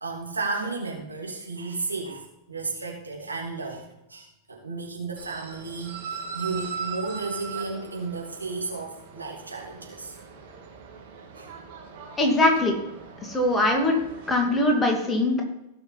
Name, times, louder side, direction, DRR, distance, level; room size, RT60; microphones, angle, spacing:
voice 1, 0.0-10.2 11.3-11.5, right 3 dB, 80° right, -1 dB, 2.6 m, -33 dB
sound 1, 5.2-14.8, right 6 dB, 50° right, 2.4 m, -40 dB
voice 2, 12.2-12.8 13.2-14.0 14.3-15.4, left 1 dB, 15° left, 1 dB, 2.4 m, -21 dB
17.0 x 5.9 x 4.2 m, 0.90 s
figure-of-eight pair, 90°, 0 cm